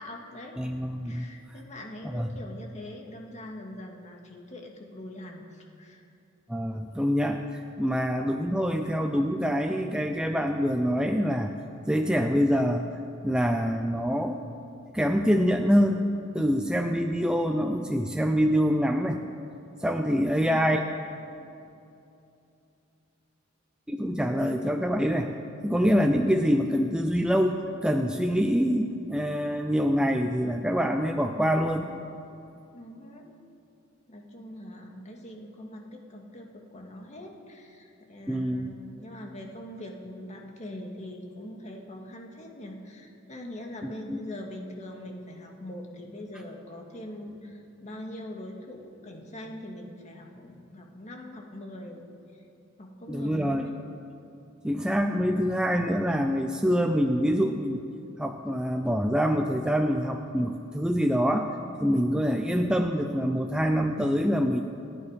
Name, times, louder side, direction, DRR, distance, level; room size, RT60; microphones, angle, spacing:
voice 1, 0.0-0.6 1.0-6.1 32.7-33.3 34.1-52.4 52.8-53.8, left 1 dB, 35° left, 1 dB, 2.1 m, -42 dB
voice 2, 0.6-1.2 2.1-2.3 6.5-11.5 11.9-12.9 13.2-14.4 14.9-16.1 16.3-19.2 19.8-20.8 23.9-25.3 25.6-31.9 38.3-38.7 43.8-44.2 53.1-53.7 54.6-57.8 58.2-64.6, equal, 5° right, 4 dB, 0.6 m, -25 dB
29.0 x 9.7 x 5.2 m, 2.7 s
head